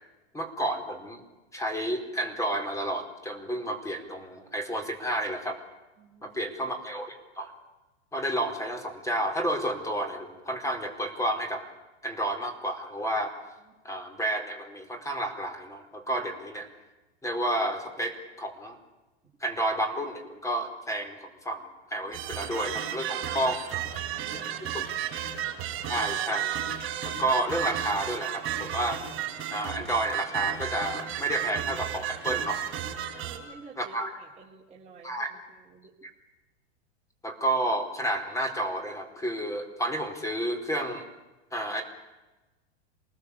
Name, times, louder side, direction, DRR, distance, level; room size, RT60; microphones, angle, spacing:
voice 1, 0.3-1.2 1.5-5.6 6.2-7.5 8.1-11.7 12.0-13.3 13.8-16.7 17.2-18.8 19.4-23.6 24.7-24.9 25.9-26.5 27.0-29.0 29.5-32.6 33.8-34.1 35.0-35.3 37.2-41.1 41.5-41.8, right 1 dB, 10° left, 5 dB, 4.6 m, -31 dB
voice 2, 6.0-6.3 22.1-22.2 22.8-23.5 24.1-24.9 33.1-35.9, right 6 dB, 20° right, -4 dB, 3.7 m, -48 dB
sound 1, 22.1-33.4, right 10 dB, 35° right, 6.5 m, -33 dB
27.5 x 20.0 x 8.6 m, 1.1 s
hypercardioid pair, 120°, 34 cm